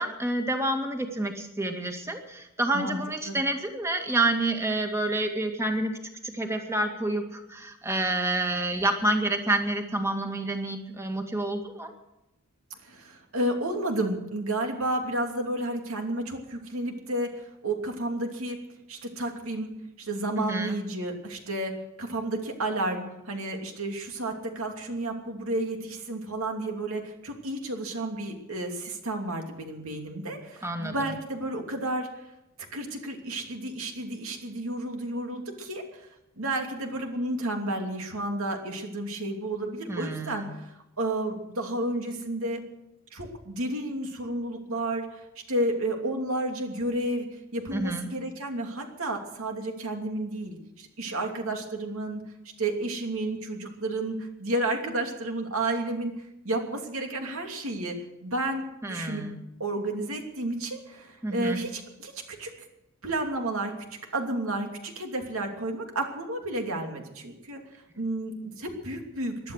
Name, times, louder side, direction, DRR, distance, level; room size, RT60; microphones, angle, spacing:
voice 1, 0.0-5.9 6.2-11.9 20.4-20.8 30.6-31.1 39.9-40.5 47.7-48.1 58.8-59.4 61.2-61.6, right 2 dB, 15° right, 4 dB, 2.1 m, -28 dB
voice 2, 12.8-18.6 18.9-19.7 20.0-21.7 22.0-32.1 32.7-36.1 36.4-42.6 43.1-45.2 45.5-47.3 47.5-52.2 52.6-56.1 56.4-57.9 58.2-59.2 59.6-62.5 63.0-63.7 64.1-67.6 68.0-69.5, right 1 dB, 65° right, 3 dB, 2.9 m, -31 dB
18.0 x 12.0 x 6.5 m, 0.87 s
head